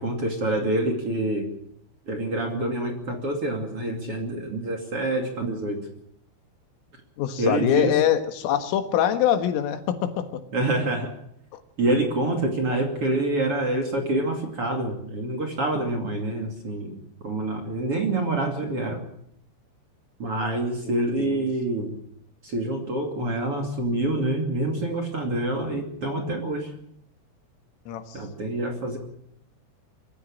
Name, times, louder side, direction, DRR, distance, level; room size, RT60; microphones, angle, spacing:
voice 1, 0.0-1.5 2.1-5.8 7.4-7.9 10.5-11.1 11.8-17.0 17.2-19.0 20.2-21.9 22.4-26.7 28.1-29.0, right 2 dB, 35° right, 2 dB, 2.7 m, -26 dB
voice 2, 7.2-10.4 11.5-11.6 20.8-21.5 27.9-28.2, left 10 dB, 85° left, 8 dB, 4.2 m, -24 dB
24.0 x 13.5 x 8.8 m, 0.74 s
omnidirectional pair, 5.7 m